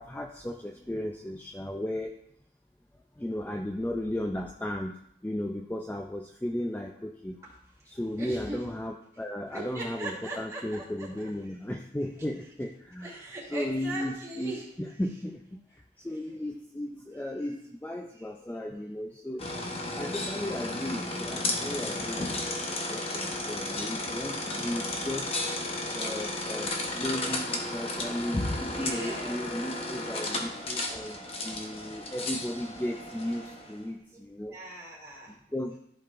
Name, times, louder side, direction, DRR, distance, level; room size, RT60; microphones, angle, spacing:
voice 1, 0.0-2.1 3.2-5.0 5.2-7.4 7.9-13.1 13.5-19.4 19.8-25.3 25.9-34.6 35.3-35.8, left 1 dB, 10° left, 3 dB, 0.3 m, -35 dB
voice 2, 7.9-8.6 9.5-11.5 13.0-14.7 16.0-16.4 17.4-17.5 18.1-18.3 28.4-29.5 34.1-34.2 34.5-35.3, right 2 dB, 15° right, -6 dB, 2.9 m, -41 dB
sound 1, 19.4-33.8, left 2 dB, 35° left, 0.9 m, -33 dB
14.0 x 5.2 x 2.5 m, 0.71 s
head